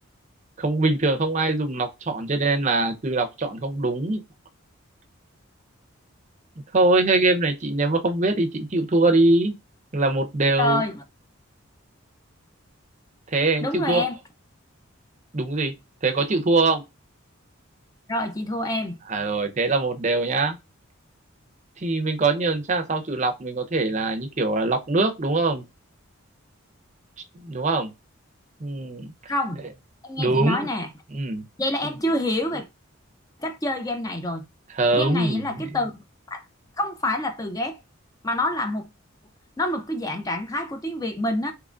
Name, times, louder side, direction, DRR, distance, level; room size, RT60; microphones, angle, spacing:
voice 1, 0.6-4.2 6.7-9.5 9.9-10.8 13.3-14.1 15.3-15.7 16.0-16.8 19.1-20.6 21.8-25.6 27.4-27.9 28.6-29.1 30.2-30.6 31.1-31.4 34.8-35.7, right 2 dB, 35° right, 0.6 m, -22 dB
voice 2, 10.6-11.0 13.6-14.2 18.1-19.0 29.3-29.6 30.0-30.9 31.6-32.7 33.4-34.4 34.9-36.0 36.3-36.4 36.8-37.8 38.2-38.9 39.6-41.5, left 1 dB, 15° left, 0.5 m, -27 dB
3.7 x 3.0 x 2.3 m
head